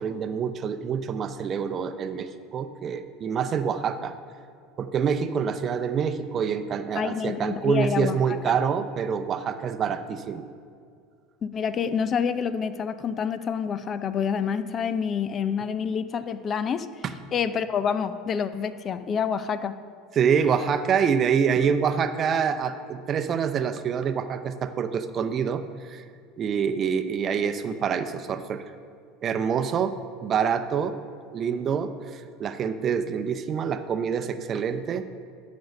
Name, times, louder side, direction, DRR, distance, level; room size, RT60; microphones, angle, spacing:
voice 1, 0.0-4.1 4.8-10.4 17.0-17.1 20.2-26.0 26.4-28.6 29.2-29.9 30.2-31.0 31.3-35.2, right 7 dB, 40° right, 10 dB, 0.6 m, -26 dB
voice 2, 6.9-8.6 11.4-16.9 17.3-19.7, left 7 dB, 35° left, 13 dB, 0.5 m, -27 dB
12.0 x 5.2 x 5.3 m, 2.2 s
hypercardioid pair, 95°, 0 cm